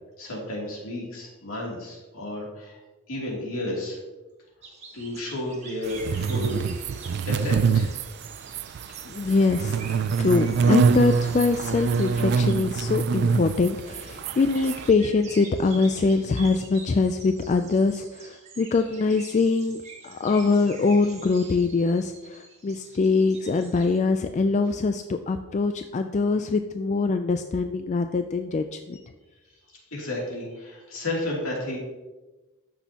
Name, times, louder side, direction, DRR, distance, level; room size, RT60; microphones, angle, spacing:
voice 1, 0.2-2.8 3.1-4.0 4.9-6.6 7.2-8.0 8.9-9.0 29.9-31.8, left 1 dB, 70° left, -3 dB, 2.9 m, -32 dB
sound 1, 4.6-24.0, right 4 dB, 30° right, 1.6 m, -47 dB
sound 2, 5.9-14.9, right 5 dB, 50° right, 0.3 m, -25 dB
voice 2, 9.1-9.8 10.2-29.0, left 4 dB, 35° left, 7 dB, 0.3 m, -23 dB
13.5 x 6.2 x 2.9 m, 1.1 s
head